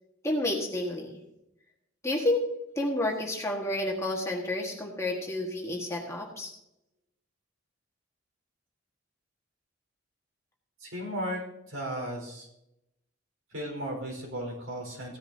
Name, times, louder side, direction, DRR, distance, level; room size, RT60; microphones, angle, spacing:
voice 1, 0.2-1.1 2.0-2.4 2.8-6.5, left 1 dB, 15° left, -1 dB, 1.4 m, -30 dB
voice 2, 10.8-11.4 11.7-12.5 13.5-15.2, equal, 80° right, -1 dB, 4.4 m, -35 dB
16.0 x 10.0 x 2.7 m, 0.85 s
head